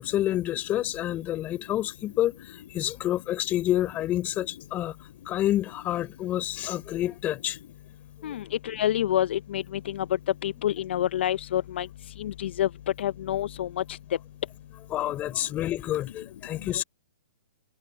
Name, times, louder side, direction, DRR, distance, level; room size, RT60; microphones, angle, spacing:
voice 1, 0.0-5.0 5.2-7.6 8.2-8.3 14.9-16.8, left 13 dB, 25° left, 4.5 m, -28 dB
voice 2, 8.2-10.1 10.4-11.9 12.2-12.7 13.0-14.0 16.7-16.8, left 11 dB, 60° left, 0.8 m, -28 dB
hypercardioid pair, 135°, 7 cm